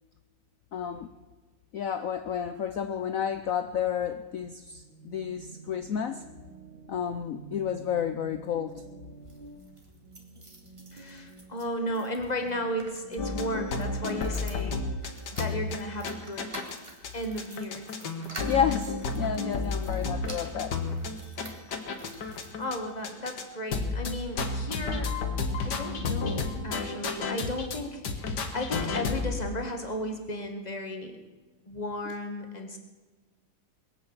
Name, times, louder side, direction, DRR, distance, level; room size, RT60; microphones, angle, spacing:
voice 1, 0.7-1.1 1.7-6.2 6.9-8.8 18.5-20.8, left 8 dB, 85° left, 9 dB, 0.7 m, -31 dB
sound 1, 4.7-14.7, right 4 dB, 65° right, 2.3 m, -49 dB
sound 2, 9.1-23.1 23.7-24.5 24.9-25.0 25.2-25.3, right 1 dB, 15° right, 1.9 m, -49 dB
voice 2, 10.9-14.8 15.4-16.5 17.1-17.9 22.2-25.1 25.6-31.2 31.7-32.8, equal, 20° left, 4 dB, 1.7 m, -34 dB
sound 3, 13.2-16.8 17.0-17.1 17.4-22.8 23.0-23.4 23.7-27.8 28.0-29.4, left 4 dB, 55° left, 1.9 m, -32 dB
21.0 x 8.6 x 7.3 m, 1.2 s
omnidirectional pair, 2.3 m